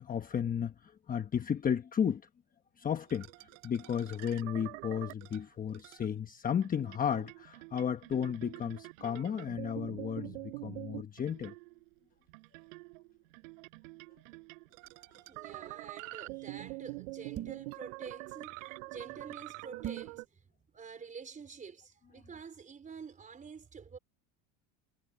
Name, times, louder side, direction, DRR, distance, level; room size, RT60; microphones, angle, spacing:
voice 1, 0.0-2.2 2.8-3.3 3.6-11.5, left 8 dB, 20° left, 1.1 m, -33 dB
sound 1, 3.1-6.1 6.6-11.9 12.3-20.2, right 25 dB, 85° right, 6.6 m, -46 dB
voice 2, 15.1-20.4 20.7-24.0, right 5 dB, 20° right, 4.4 m, -48 dB
sound 2, 17.3-17.7 19.8-20.2, right 12 dB, 40° right, 4.0 m, -40 dB
cardioid pair, 140°, 37 cm